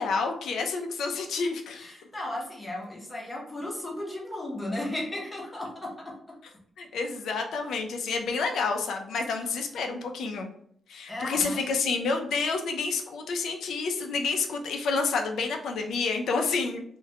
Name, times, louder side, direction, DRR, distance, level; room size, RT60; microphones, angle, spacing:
voice 1, 0.0-1.9 6.8-10.5 10.9-16.8, left 4 dB, 85° left, 3 dB, 0.4 m, -29 dB
voice 2, 1.8-6.1 11.1-11.8, left 1 dB, 15° left, -2 dB, 0.7 m, -35 dB
2.2 x 2.2 x 2.7 m, 0.66 s
wide cardioid pair, 140°, 0 cm